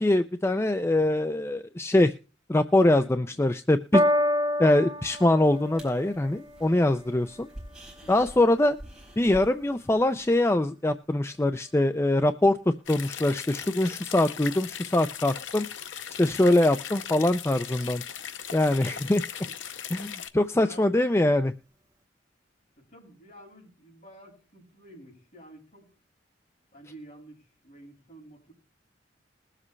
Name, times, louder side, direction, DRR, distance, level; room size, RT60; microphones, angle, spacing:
voice 1, 0.0-2.1 2.5-4.0 4.6-7.5 8.1-8.8 9.2-15.7 16.2-18.0 18.5-19.2 19.9-21.5, left 1 dB, 15° left, 9 dB, 0.5 m, -23 dB
voice 2, 2.9-3.6 4.7-5.0 8.0-8.2 20.6-21.0 22.8-26.0 26.7-28.5, equal, 50° left, -1 dB, 6.5 m, -50 dB
Piano, 3.9-10.5 11.3-11.4, left 1 dB, 20° right, 1.1 m, -31 dB
sound 1, 5.1-10.4, right 1 dB, 5° right, 4.8 m, -48 dB
sound 2, 12.9-20.3, left 9 dB, 80° left, 0.8 m, -38 dB
21.0 x 7.5 x 3.2 m, 0.35 s
head